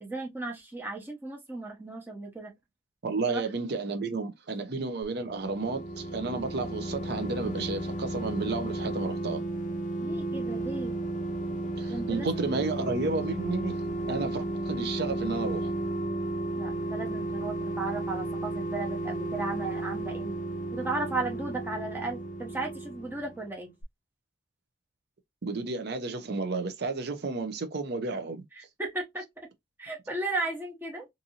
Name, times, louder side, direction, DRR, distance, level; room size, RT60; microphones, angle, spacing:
voice 1, 0.0-2.5 3.3-3.5 10.0-11.0 11.9-12.4 16.6-20.3 20.7-23.7 28.5-29.2 29.8-31.1, right 2 dB, 10° right, 0.7 m, -35 dB
voice 2, 3.0-9.4 11.8-13.8 14.1-15.7 25.4-28.4, right 3 dB, 55° right, 0.6 m, -32 dB
sound 1, 5.2-23.5 23.8-23.9, right 1 dB, 40° left, 0.4 m, -33 dB
2.6 x 2.6 x 2.7 m
head